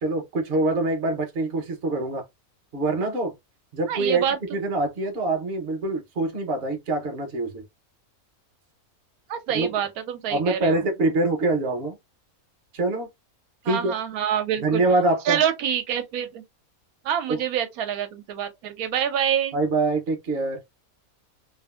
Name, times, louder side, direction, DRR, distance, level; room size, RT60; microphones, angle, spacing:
voice 1, 0.0-2.2 2.7-3.3 3.7-4.2 4.5-7.6 9.5-9.7 10.3-12.0 12.7-13.1 13.6-13.9 14.6-15.4 17.3-17.4 19.5-20.6, right 2 dB, 50° right, 0.9 m, -24 dB
voice 2, 3.9-4.4 9.3-10.8 13.7-14.8 15.3-16.4 17.0-19.6, right 9 dB, 80° right, 1.0 m, -26 dB
2.8 x 2.5 x 2.4 m
omnidirectional pair, 1.5 m